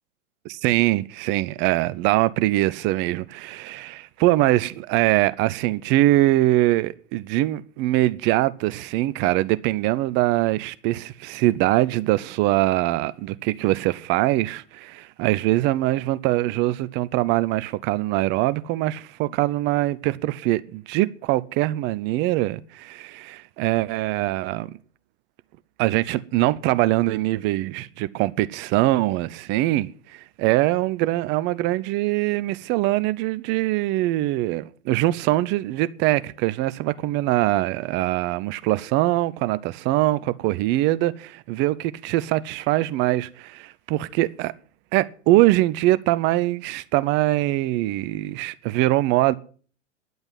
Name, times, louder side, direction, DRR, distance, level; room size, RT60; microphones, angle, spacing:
voice 1, 0.5-24.7 25.8-44.5 44.9-49.3, right 17 dB, 30° right, 0.6 m, -23 dB
11.0 x 8.0 x 9.7 m
hypercardioid pair, 110°, 37 cm